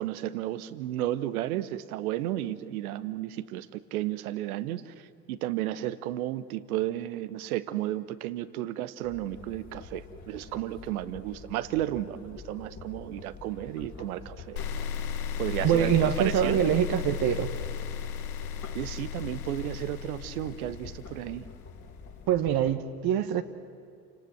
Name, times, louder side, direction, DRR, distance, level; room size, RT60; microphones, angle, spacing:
voice 1, 0.0-14.6 15.4-16.6 18.7-21.5, right 13 dB, 75° right, 15 dB, 1.1 m, -33 dB
sound 1, 9.0-22.7, left 4 dB, 40° left, 2.9 m, -46 dB
sound 2, 14.6-21.7, left 8 dB, 75° left, 1.6 m, -35 dB
voice 2, 15.6-17.5 22.3-23.4, right 10 dB, 55° right, 8 dB, 1.5 m, -24 dB
29.0 x 18.0 x 7.7 m, 2.4 s
hypercardioid pair, 55°, 44 cm